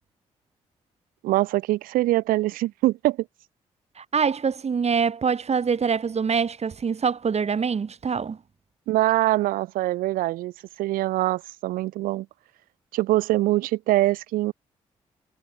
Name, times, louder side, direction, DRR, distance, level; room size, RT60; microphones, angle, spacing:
voice 1, 1.2-3.2 8.9-10.5 10.8-12.3 12.9-14.5, right 17 dB, 80° right, 2.9 m, -23 dB
voice 2, 4.0-8.4, right 6 dB, 50° right, 2.6 m, -24 dB
hypercardioid pair, 45°, 14 cm